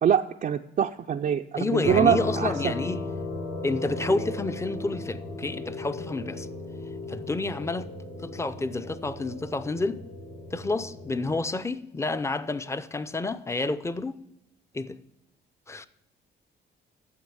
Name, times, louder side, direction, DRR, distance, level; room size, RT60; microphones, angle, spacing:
voice 1, 0.0-2.7, right 8 dB, 45° right, 0.4 m, -24 dB
voice 2, 1.5-3.0 3.6-6.5 7.1-7.9 8.2-10.0 10.5-14.1 14.7-15.0 15.7-15.9, left 3 dB, 15° left, 0.6 m, -29 dB
sound 1, 1.8-11.4, left 2 dB, 90° left, 5.2 m, -36 dB
9.5 x 7.0 x 7.0 m
cardioid pair, 90°, 20 cm